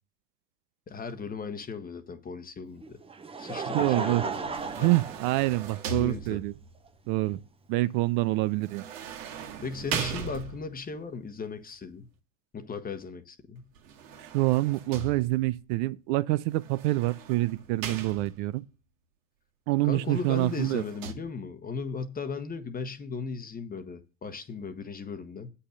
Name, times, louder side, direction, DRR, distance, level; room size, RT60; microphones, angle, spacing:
voice 1, 0.9-3.0 3.4-4.5 4.8-5.0 5.9-6.4 9.6-12.1 12.5-13.7 19.8-25.5, left 5 dB, 20° left, 1.2 m, -37 dB
Laughter, 2.8-6.0 6.9-7.0 8.4-8.5, right 4 dB, 15° right, 0.9 m, -35 dB
voice 2, 3.7-4.3 4.8-6.5 7.1-7.4 7.7-8.8 14.2-18.6 19.7-20.8, right 19 dB, 60° right, 0.6 m, -26 dB
sound 1, 4.3-6.8 8.6-10.9 13.8-15.6 16.6-18.6 20.0-21.1, right 6 dB, 75° right, 2.0 m, -39 dB
8.4 x 5.7 x 6.5 m
hypercardioid pair, 105°, 39 cm